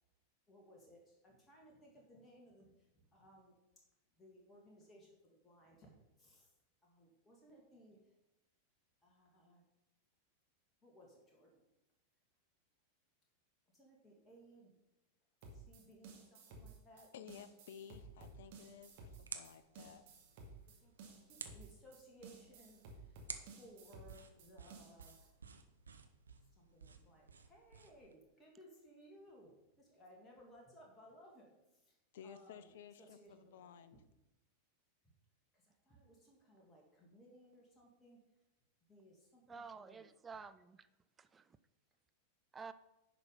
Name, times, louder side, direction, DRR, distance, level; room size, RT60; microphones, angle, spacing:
voice 1, 0.5-2.7 3.1-3.5 4.2-6.5 6.8-8.0 9.0-9.6 10.8-11.5 13.7-14.7 15.5-17.1 20.8-22.8 23.1-23.2 23.6-25.2 26.5-32.0 32.2-32.7 33.0-34.0 35.5-38.2 38.9-40.1, equal, 15° left, -2 dB, 2.3 m, -62 dB
sound 1, 15.4-25.3, right 3 dB, 50° right, 2.1 m, -55 dB
voice 2, 16.9-20.1 32.1-34.0, left 8 dB, 55° left, 13 dB, 0.6 m, -55 dB
sound 2, 18.1-28.2, right 5 dB, 75° right, 0.8 m, -55 dB
voice 3, 39.5-40.8 41.2-41.4 42.5-42.7, right 5 dB, 15° right, 12 dB, 0.5 m, -50 dB
10.5 x 5.0 x 5.5 m, 0.93 s
figure-of-eight pair, 90°, 0 cm